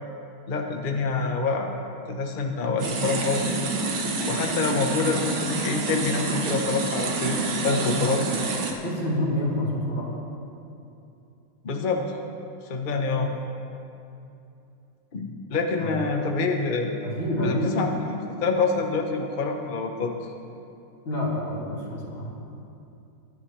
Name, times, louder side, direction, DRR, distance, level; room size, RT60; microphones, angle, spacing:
voice 1, 0.5-1.7 2.1-3.5 4.3-7.4 7.6-8.3 11.6-12.0 12.7-13.3 15.1-16.9 17.4-20.1, left 4 dB, 35° left, 3 dB, 0.9 m, -26 dB
sound 1, 2.8-8.7, right 3 dB, 80° right, 2.1 m, -28 dB
voice 2, 8.8-10.1 15.8-16.1 17.0-18.0 21.1-22.3, left 1 dB, 85° left, -6 dB, 3.8 m, -28 dB
22.0 x 11.0 x 3.3 m, 2.7 s
omnidirectional pair, 2.1 m